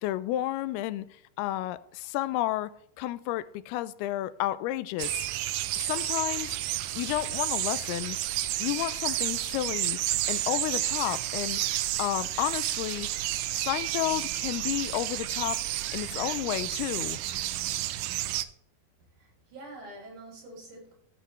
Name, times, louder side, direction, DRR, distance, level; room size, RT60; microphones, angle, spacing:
voice 1, 0.0-1.1 1.4-5.3 5.8-6.6 7.0-8.2 8.6-10.0 10.3-11.6 12.0-13.1 13.5-17.2, left 15 dB, 90° left, 2.5 m, -31 dB
sound 1, 5.0-18.5, right 14 dB, 85° right, 1.8 m, -31 dB
voice 2, 19.1-20.9, right 1 dB, 55° right, 5.3 m, -46 dB
14.5 x 7.6 x 3.2 m
omnidirectional pair, 4.4 m